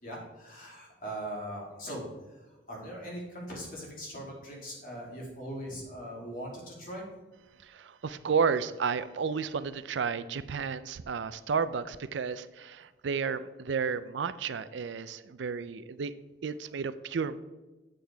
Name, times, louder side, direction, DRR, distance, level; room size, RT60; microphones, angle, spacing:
voice 1, 0.0-2.0 2.3-2.4 2.7-7.1, right 1 dB, 45° left, -3 dB, 2.8 m, -40 dB
voice 2, 7.6-16.1 16.4-17.4, right 6 dB, 80° right, 14 dB, 0.4 m, -32 dB
8.6 x 7.6 x 3.4 m, 1.2 s
head